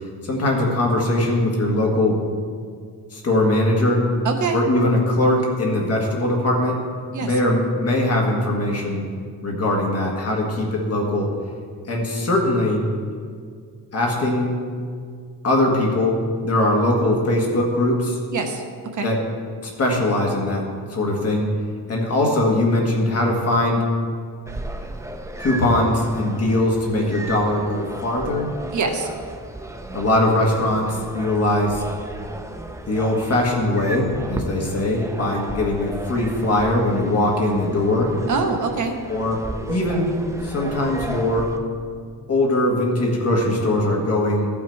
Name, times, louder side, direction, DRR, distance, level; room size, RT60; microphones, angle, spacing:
voice 1, 0.2-2.2 3.1-4.0 4.5-6.8 7.2-9.0 9.4-11.3 11.9-12.8 13.9-14.5 15.4-18.2 19.0-19.2 19.6-20.6 20.9-21.5 21.9-23.8 25.4-28.5 29.9-31.8 32.9-38.1 39.1-39.4 39.7-40.1 40.4-41.5 42.3-44.5, left 1 dB, 35° left, -1 dB, 1.7 m, -21 dB
voice 2, 4.2-4.6 7.1-7.4 18.3-18.6 18.9-19.1 28.7-29.1 38.3-38.9, right 4 dB, 50° right, 4 dB, 0.9 m, -24 dB
sound 1, 24.5-41.6, right 1 dB, 10° right, 0.4 m, -34 dB
15.0 x 5.9 x 4.6 m, 2.1 s
wide cardioid pair, 175°, 40 cm